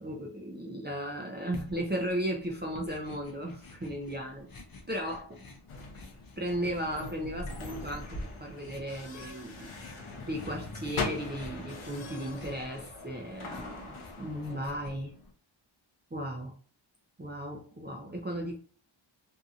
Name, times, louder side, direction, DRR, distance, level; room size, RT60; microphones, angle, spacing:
voice 1, 0.0-4.5 4.9-5.4 6.4-9.7 10.0-15.2 16.1-16.5 17.2-18.6, equal, 20° right, 0 dB, 0.6 m, -36 dB
sound 1, 1.5-15.3, left 2 dB, 45° left, 0.7 m, -51 dB
sound 2, 5.7-14.8, left 3 dB, 90° left, 0.7 m, -41 dB
2.7 x 2.6 x 2.4 m, 0.42 s
wide cardioid pair, 50°, 49 cm